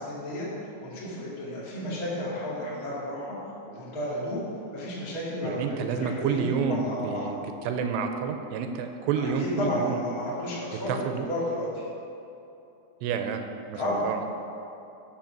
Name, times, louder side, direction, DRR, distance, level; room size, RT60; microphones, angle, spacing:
voice 1, 0.0-3.4 3.7-4.4 4.7-7.3 9.2-11.8 13.7-14.1, left 1 dB, 30° left, -7 dB, 1.8 m, -32 dB
voice 2, 5.4-7.4 7.7-10.0 10.9-11.3 13.0-13.4 13.7-14.2, right 6 dB, 85° right, 6 dB, 2.6 m, -29 dB
12.0 x 5.8 x 6.0 m, 2.9 s
omnidirectional pair, 5.2 m